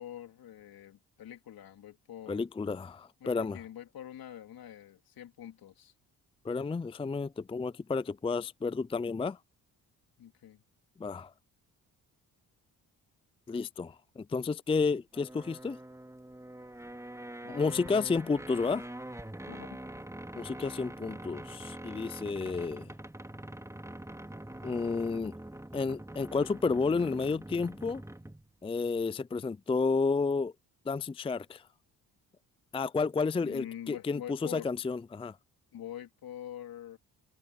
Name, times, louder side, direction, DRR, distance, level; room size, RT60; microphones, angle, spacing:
voice 1, 0.0-2.5 3.2-5.9 10.2-10.6 17.4-18.2 19.5-19.7 33.4-34.7 35.7-37.0, left 11 dB, 70° left, 3.4 m, -45 dB
voice 2, 2.3-3.6 6.4-9.4 11.0-11.3 13.5-15.8 17.5-18.9 20.4-22.9 24.6-25.3 25.7-28.0 28.6-30.5 30.9-31.6 32.7-35.4, left 4 dB, 15° left, 0.4 m, -31 dB
sound 1, 15.1-28.5, right 1 dB, 10° right, 4.0 m, -44 dB
supercardioid pair, 65°, 38 cm